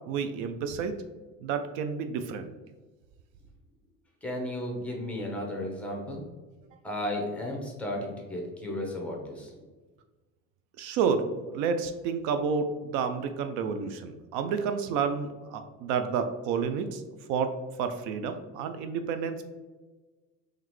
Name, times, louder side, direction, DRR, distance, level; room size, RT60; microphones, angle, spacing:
voice 1, 0.1-1.0 1.4-2.5 10.8-17.0 17.3-17.5 17.8-19.4, right 6 dB, 70° right, 8 dB, 0.5 m, -30 dB
voice 2, 4.2-6.3 6.8-9.5, left 1 dB, 5° left, 0 dB, 0.9 m, -34 dB
3.8 x 3.2 x 3.1 m, 1.3 s
cardioid pair, 130°, 31 cm